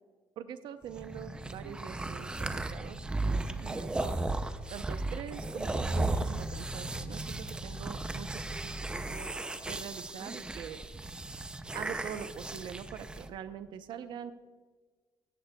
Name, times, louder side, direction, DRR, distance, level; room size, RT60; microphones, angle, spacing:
voice 1, 0.4-4.1 4.7-9.3 9.7-10.8 11.7-14.3, right 8 dB, 60° right, 11 dB, 0.6 m, -44 dB
sound 1, 0.9-13.3, right 2 dB, 10° right, 0.4 m, -35 dB
15.0 x 14.0 x 2.2 m, 1.4 s
cardioid pair, 155°, 9 cm